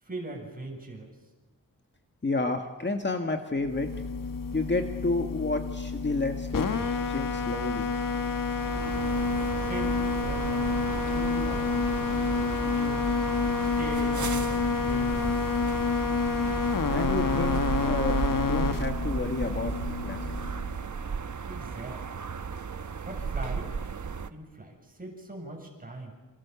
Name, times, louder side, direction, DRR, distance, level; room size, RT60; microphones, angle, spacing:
voice 1, 0.1-1.1 9.6-13.0 13.6-15.4 21.5-22.0 23.0-23.7 24.3-26.1, right 2 dB, 25° right, 1 dB, 7.4 m, -41 dB
voice 2, 2.2-3.9 4.5-7.9 16.9-19.7 20.0-20.2, left 3 dB, 30° left, 4 dB, 1.9 m, -30 dB
sound 1, 3.6-20.8, left 4 dB, 70° left, 1.5 m, -29 dB
sound 2, 8.6-24.3, right 5 dB, 55° right, 1.2 m, -35 dB
29.0 x 27.5 x 7.2 m, 1.2 s
wide cardioid pair, 135°, 34 cm